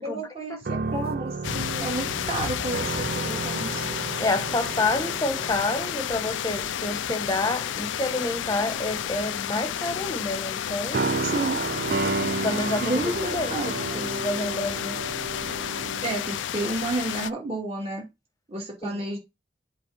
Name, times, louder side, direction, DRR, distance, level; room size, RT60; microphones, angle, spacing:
voice 1, 0.0-3.9 11.2-11.6 12.8-13.7 16.0-18.0 18.5-19.2, right 2 dB, 30° right, 2.7 m, -31 dB
sound 1, 0.6-6.7 7.1-7.4 8.3-9.1 10.9-16.1, right 3 dB, 50° right, 0.5 m, -32 dB
sound 2, 1.4-17.3, left 9 dB, 80° left, 0.4 m, -31 dB
voice 2, 4.2-11.0 12.0-13.6 13.9-15.0 18.8-19.0, left 2 dB, 20° left, 1.1 m, -29 dB
7.7 x 3.5 x 5.6 m
head